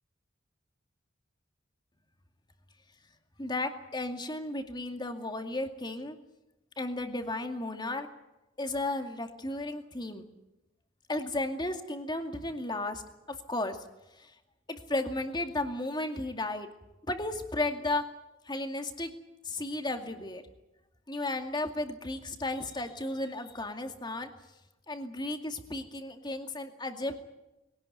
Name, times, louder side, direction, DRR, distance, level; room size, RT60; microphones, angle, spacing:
voice 1, 3.4-6.2 6.8-8.1 8.6-10.3 11.1-13.0 13.5-13.8 14.1-14.3 14.7-16.7 17.1-18.0 18.5-19.1 19.4-20.4 21.1-24.3 24.9-27.2, left 2 dB, 20° left, 6 dB, 2.3 m, -34 dB
22.5 x 18.0 x 9.3 m, 0.95 s
head